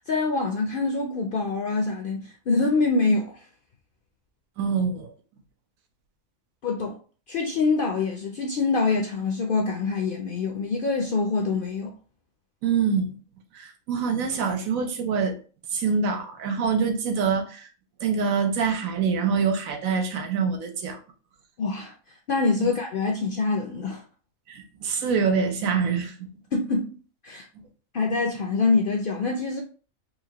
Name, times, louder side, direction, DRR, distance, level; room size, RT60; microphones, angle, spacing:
voice 1, 0.0-3.4 6.6-7.0 7.3-11.9 21.6-21.9 22.3-24.0 26.5-26.9 27.2-27.5 27.9-29.6, left 3 dB, 65° left, 0.5 m, -25 dB
voice 2, 4.6-5.1 12.6-13.2 13.5-15.3 15.7-17.7 18.0-21.0 22.6-22.7 24.5-26.2, right 5 dB, 85° right, 1.2 m, -25 dB
4.2 x 2.4 x 2.8 m
omnidirectional pair, 1.4 m